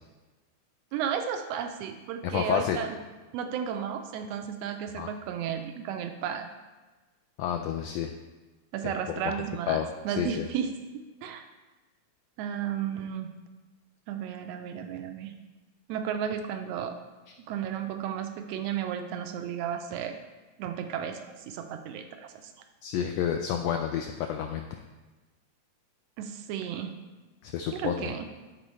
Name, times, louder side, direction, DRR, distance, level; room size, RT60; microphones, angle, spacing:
voice 1, 0.9-3.0 3.3-6.5 8.7-10.7 11.2-11.4 12.4-13.3 14.1-15.3 15.9-17.0 17.5-20.2 20.6-22.5 26.2-27.0 27.7-28.3, right 8 dB, 80° right, 6 dB, 1.5 m, -33 dB
voice 2, 2.2-2.8 5.0-5.1 7.4-8.1 9.2-9.3 9.7-9.9 10.2-10.5 22.8-24.7 27.4-28.1, left 9 dB, 85° left, 4 dB, 1.5 m, -29 dB
12.0 x 4.3 x 3.1 m, 1.2 s
omnidirectional pair, 3.4 m